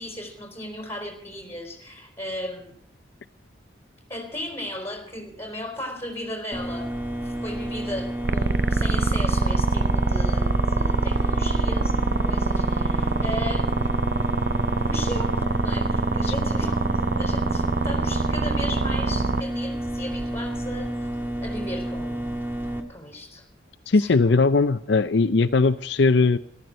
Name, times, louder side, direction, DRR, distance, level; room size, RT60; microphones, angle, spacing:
voice 1, 0.0-2.7 4.1-6.9 7.2-13.7 14.8-20.9 21.4-22.4 22.9-23.4 24.0-24.4, left 1 dB, 15° left, 2 dB, 4.1 m, -36 dB
sound 1, 6.5-22.8, right 1 dB, 10° right, 1.7 m, -30 dB
sound 2, 8.2-19.4, right 3 dB, 55° right, 0.6 m, -24 dB
voice 2, 23.9-26.4, left 3 dB, 70° left, 10 dB, 0.5 m, -19 dB
14.0 x 12.5 x 6.4 m, 0.72 s
head